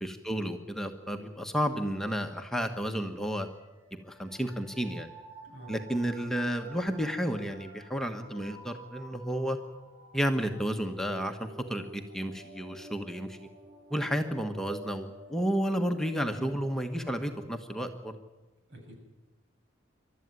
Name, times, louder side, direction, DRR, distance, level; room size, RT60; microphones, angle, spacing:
voice 1, 0.0-3.5 4.0-5.1 5.7-9.6 10.1-13.5 13.9-18.2, equal, ahead, 4 dB, 1.3 m, -32 dB
sound 1, 1.3-18.1, right 2 dB, 45° right, 7.3 m, -51 dB
voice 2, 5.4-5.7 16.4-16.5 18.7-19.0, right 1 dB, 70° right, 3 dB, 7.2 m, -46 dB
28.0 x 13.0 x 9.7 m, 1.1 s
head